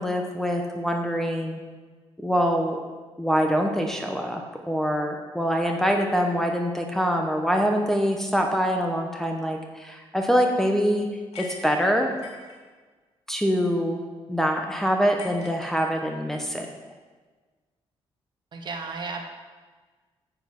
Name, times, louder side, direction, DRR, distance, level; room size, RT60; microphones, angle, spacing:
voice 1, 0.0-1.6 2.2-2.8 3.2-4.4 4.7-11.1 11.4-12.1 13.3-14.0 14.3-16.7, equal, 5° left, 2 dB, 1.0 m, -24 dB
sound 1, 11.3-12.6 15.2-16.3, left 3 dB, 85° left, 2.6 m, -42 dB
voice 2, 18.5-19.2, right 4 dB, 45° right, 3 dB, 1.4 m, -33 dB
9.6 x 7.8 x 5.9 m, 1.4 s
cardioid pair, 140°, 10 cm